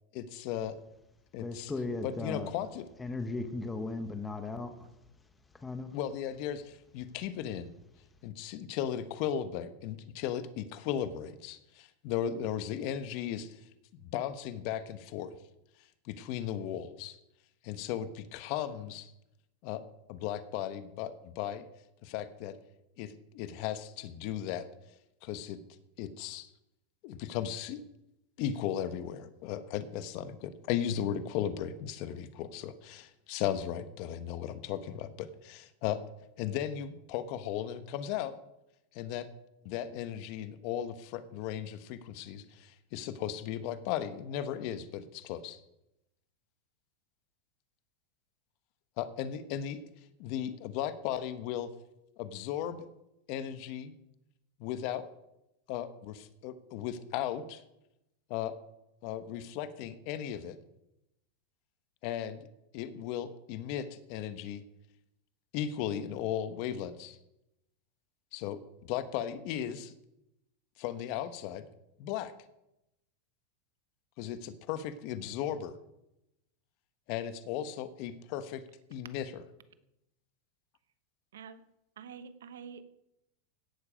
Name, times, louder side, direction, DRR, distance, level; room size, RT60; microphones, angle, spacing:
voice 1, 0.1-0.8 1.3-1.7 2.0-2.9 5.9-7.7 8.2-13.6 14.1-15.3 16.0-17.2 17.6-19.1 19.6-19.8 20.1-21.7 22.0-22.6 23.0-24.7 25.2-25.6 26.0-26.5 27.0-27.8 28.4-36.0 36.4-38.4 38.9-39.3 39.6-45.6 49.0-49.8 50.2-51.7 52.2-52.9 53.3-53.9 54.6-55.1 55.7-57.6 58.3-58.5 59.0-60.6 62.0-62.5 62.7-64.6 65.5-67.2 68.3-69.9 70.8-71.7 72.0-72.3 74.2-75.8 77.1-78.6 78.9-79.4, left 10 dB, 55° left, 12 dB, 1.2 m, -36 dB
voice 2, 1.4-2.5 3.0-4.7 5.5-5.9, left 3 dB, 10° left, 7 dB, 1.4 m, -36 dB
voice 3, 82.0-82.8, right 7 dB, 90° right, 12 dB, 1.1 m, -46 dB
17.0 x 7.2 x 5.1 m, 0.87 s
supercardioid pair, 130°, 0 cm